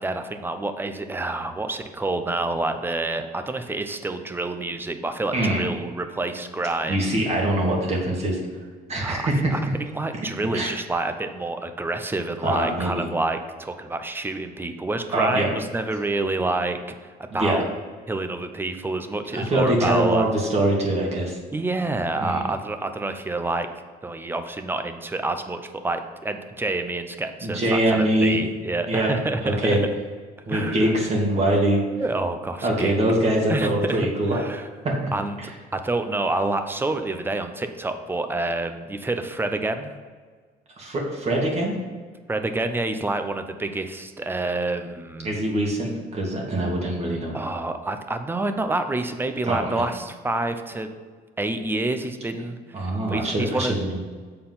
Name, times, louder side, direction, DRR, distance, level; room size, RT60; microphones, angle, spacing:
voice 1, 0.0-7.0 9.0-16.8 17.3-17.7 18.1-20.3 21.5-23.7 24.0-29.8 30.5-30.9 32.0-32.9 33.5-34.7 35.1-39.9 42.3-45.4 46.6-46.7 47.3-50.9 51.4-53.8, right 2 dB, 10° right, 8 dB, 0.6 m, -28 dB
voice 2, 5.3-5.6 6.9-8.4 8.9-9.5 10.5-10.7 12.4-13.1 15.1-15.5 17.3-17.6 19.3-21.4 22.2-22.4 27.4-28.4 28.9-29.1 29.4-29.8 30.5-31.8 32.6-34.4 35.0-35.1 35.4-35.5 40.8-41.8 45.2-47.3 49.5-49.8 52.7-54.0, right 1 dB, 40° right, -2 dB, 2.0 m, -23 dB
7.5 x 4.4 x 5.5 m, 1.5 s
cardioid pair, 110°, 17 cm